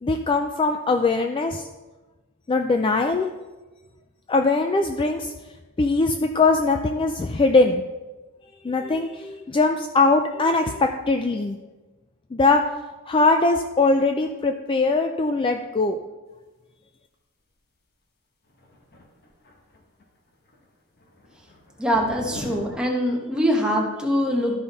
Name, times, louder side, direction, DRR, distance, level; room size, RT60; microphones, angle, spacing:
voice 1, 0.0-1.7 2.5-3.3 4.3-5.3 5.8-7.9 8.6-11.6 12.3-12.6 13.1-16.0, left 3 dB, 25° left, 5 dB, 0.4 m, -21 dB
sound 1, 18.5-20.0 20.3-20.7 21.0-22.7, left 1 dB, 45° left, 1.2 m, -41 dB
voice 2, 21.8-24.5, equal, 5° right, -1 dB, 1.3 m, -23 dB
12.5 x 5.1 x 4.0 m, 1.2 s
head